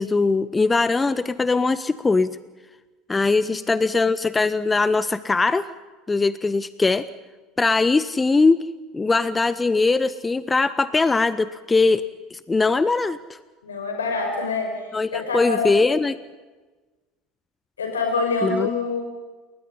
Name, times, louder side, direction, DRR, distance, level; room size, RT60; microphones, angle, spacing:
voice 1, 0.0-2.4 3.1-5.7 6.1-7.1 7.6-8.6 8.9-12.0 12.3-13.4 14.9-16.2 18.4-18.7, left 3 dB, 15° left, 16 dB, 0.7 m, -21 dB
voice 2, 13.6-14.7 15.1-15.7 17.8-19.0, left 4 dB, 80° left, 3 dB, 5.9 m, -25 dB
29.0 x 20.5 x 5.6 m, 1.3 s
figure-of-eight pair, 70°, 0 cm